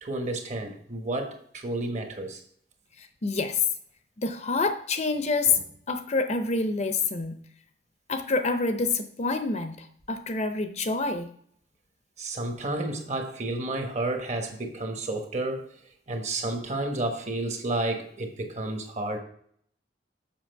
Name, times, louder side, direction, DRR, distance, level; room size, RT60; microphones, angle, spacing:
voice 1, 0.0-2.4 12.2-15.8 16.1-19.2, right 2 dB, 40° right, 1.2 m, -31 dB
voice 2, 3.0-3.6 4.2-7.4 8.1-11.3, left 3 dB, 40° left, 0.6 m, -27 dB
7.4 x 6.0 x 4.6 m
head